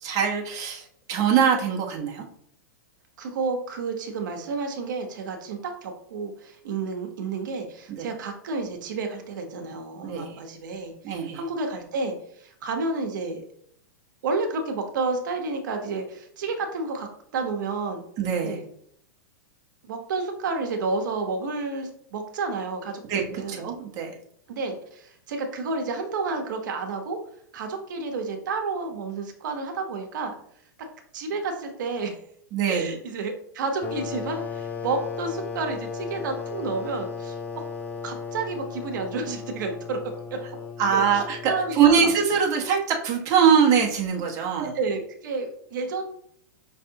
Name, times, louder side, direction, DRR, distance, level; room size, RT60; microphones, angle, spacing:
voice 1, 0.0-2.2 8.0-8.1 10.0-10.3 11.0-11.4 18.2-18.6 23.1-24.1 32.5-32.9 40.8-44.7, right 7 dB, 30° right, 0 dB, 1.0 m, -23 dB
voice 2, 3.2-13.4 14.2-18.0 18.4-18.6 19.8-23.7 24.5-27.2 27.5-30.4 31.1-32.2 32.7-37.4 38.0-40.0 40.9-42.1 44.6-46.0, right 3 dB, 70° right, 4 dB, 0.9 m, -30 dB
sound 1, 33.8-42.2, left 6 dB, 15° left, 0.5 m, -36 dB
5.4 x 3.3 x 2.8 m, 0.66 s
hypercardioid pair, 140°, 11 cm